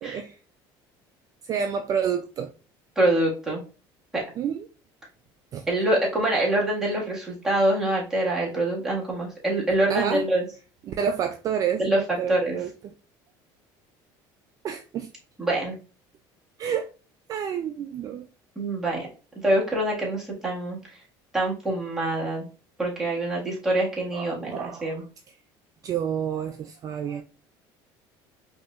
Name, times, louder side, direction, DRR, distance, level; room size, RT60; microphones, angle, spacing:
voice 1, 0.0-0.4 1.4-2.5 4.4-4.7 5.5-5.7 9.9-10.2 10.9-12.9 14.6-15.1 16.6-16.9 17.3-18.3 24.1-25.0 25.8-27.2, right 8 dB, 35° right, 0.3 m, -29 dB
voice 2, 2.9-3.6 4.1-4.2 5.7-10.4 11.8-12.0 12.3-12.6 15.4-15.8 18.5-19.1 19.4-21.0 21.3-22.5 22.8-25.0, right 1 dB, 5° right, 1.6 m, -25 dB
5.2 x 2.8 x 2.3 m
cardioid pair, 145°, 10 cm